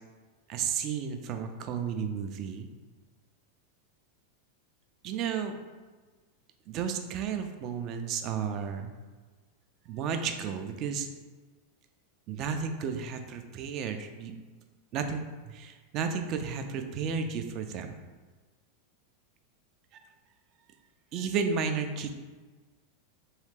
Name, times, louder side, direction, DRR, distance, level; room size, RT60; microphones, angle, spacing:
voice 1, 0.5-2.7 5.0-5.5 6.7-8.9 9.9-11.1 12.3-14.3 14.9-17.9 19.9-20.0 21.1-22.1, right 6 dB, 40° right, 6 dB, 0.4 m, -33 dB
3.5 x 3.2 x 3.2 m, 1.3 s
figure-of-eight pair, 90°, 0 cm